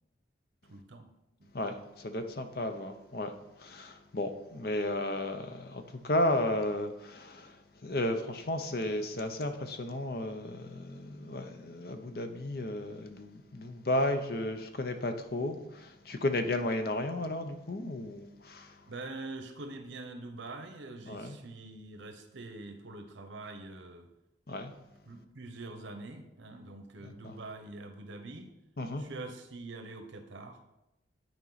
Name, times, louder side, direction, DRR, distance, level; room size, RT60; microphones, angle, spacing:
voice 1, 0.7-1.1 1.4-1.5 18.9-24.1 25.0-28.5 29.0-30.6, right 2 dB, 85° right, 7 dB, 0.9 m, -44 dB
voice 2, 1.5-3.3 3.6-7.6 7.8-18.7 21.1-21.4 24.5-24.7 27.0-27.1 28.8-29.0, left 1 dB, 55° left, 7 dB, 0.7 m, -33 dB
10.0 x 4.5 x 4.0 m, 0.90 s
head